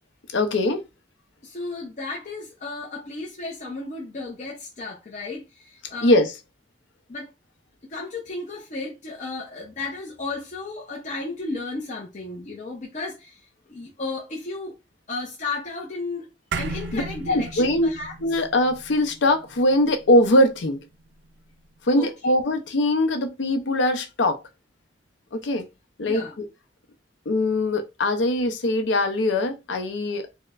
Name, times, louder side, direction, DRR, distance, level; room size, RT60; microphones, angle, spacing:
voice 1, 0.3-0.8 6.0-6.3 16.9-17.0 17.3-17.9 18.2-20.8 21.9-24.4 25.3-25.7 26.0-26.5 27.3-30.3, left 1 dB, 85° left, 0.6 m, -21 dB
voice 2, 1.4-6.2 7.1-7.3 7.9-13.4 13.7-14.8 15.1-16.3 16.6-18.1 22.0-22.3 26.0-26.4, left 3 dB, 40° left, 0.6 m, -34 dB
sound 1, 16.5-21.1, right 3 dB, 80° right, 0.4 m, -36 dB
4.3 x 2.1 x 2.3 m
head